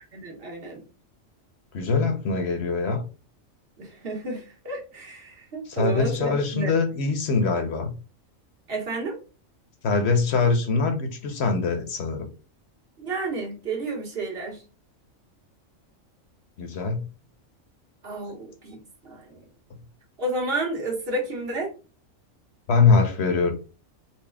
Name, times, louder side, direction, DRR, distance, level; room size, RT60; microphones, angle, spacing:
voice 1, 0.1-0.8 3.8-6.7 8.7-9.2 13.0-14.6 18.0-19.4 20.2-21.7, right 2 dB, 50° right, 1.4 m, -31 dB
voice 2, 1.7-3.0 5.8-7.9 9.8-12.3 16.6-17.0 22.7-23.5, left 4 dB, 60° left, 0.9 m, -23 dB
4.2 x 2.1 x 3.4 m
omnidirectional pair, 1.4 m